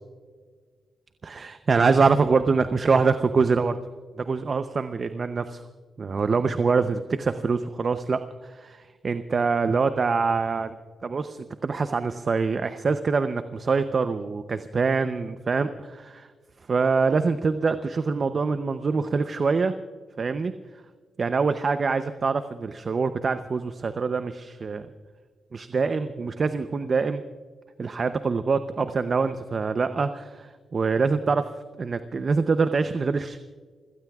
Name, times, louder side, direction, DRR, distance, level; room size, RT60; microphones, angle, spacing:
voice 1, 1.2-3.8 4.2-5.6 6.0-10.8 11.0-16.3 16.7-19.7 20.2-20.5 21.2-24.9 25.5-27.2 27.8-31.5 31.8-33.4, right 4 dB, 50° right, 10 dB, 0.7 m, -24 dB
29.0 x 17.0 x 2.4 m, 1.6 s
cardioid pair, 65°, 0 cm